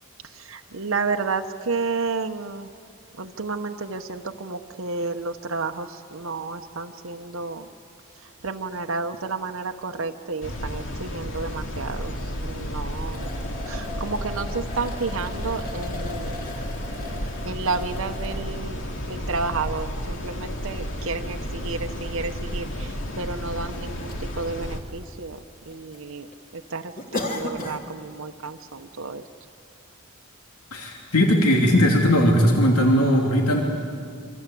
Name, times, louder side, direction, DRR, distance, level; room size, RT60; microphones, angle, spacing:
voice 1, 0.3-2.7 3.2-7.7 8.4-13.3 13.7-16.4 17.4-25.4 25.7-26.3 26.5-29.2, right 4 dB, 65° right, 5 dB, 0.9 m, -31 dB
sound 1, 10.4-24.8, equal, 60° left, 2.6 m, -32 dB
sound 2, 13.1-18.5 19.2-19.3 20.9-21.0 21.2-21.3 22.3-22.4 22.6-22.7 23.4-23.8 24.1-24.2 24.6-25.4 25.6-26.0 26.3-26.4 27.0-27.9 28.2-28.4 28.9-29.0, left 2 dB, 40° left, 3.1 m, -36 dB
voice 2, 30.7-33.6, equal, 90° left, 1 dB, 3.0 m, -18 dB
27.5 x 25.0 x 8.4 m, 2.3 s
head